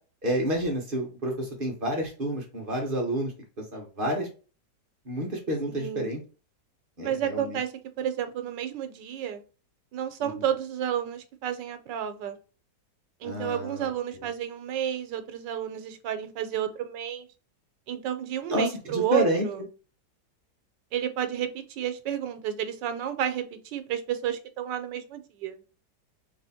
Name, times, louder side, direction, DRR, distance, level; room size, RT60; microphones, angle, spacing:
voice 1, 0.2-3.3 3.6-4.3 5.0-6.2 7.0-7.6 10.2-10.3 13.2-13.9 18.5-19.4, right 1 dB, 35° right, 0 dB, 1.1 m, -29 dB
voice 2, 5.7-6.1 7.0-9.4 9.9-12.4 13.2-17.3 17.9-19.6 20.9-25.6, right 9 dB, 85° right, 9 dB, 1.4 m, -31 dB
3.4 x 3.3 x 4.2 m, 0.35 s
omnidirectional pair, 1.9 m